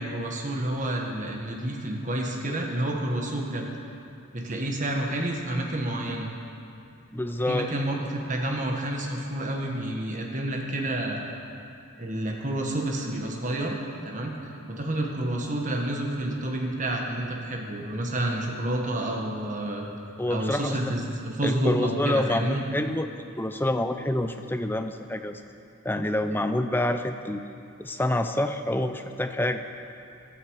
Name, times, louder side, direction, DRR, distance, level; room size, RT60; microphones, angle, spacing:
voice 1, 0.0-3.7 4.3-6.3 7.5-11.4 12.0-13.8 14.0-14.3 14.7-19.8 20.3-22.6, right 1 dB, 35° right, 0 dB, 1.5 m, -29 dB
voice 2, 7.1-7.7 20.2-20.9 21.4-25.4 25.8-27.4 27.8-29.6, left 1 dB, 10° left, 7 dB, 0.5 m, -27 dB
15.0 x 12.5 x 4.8 m, 2.5 s
head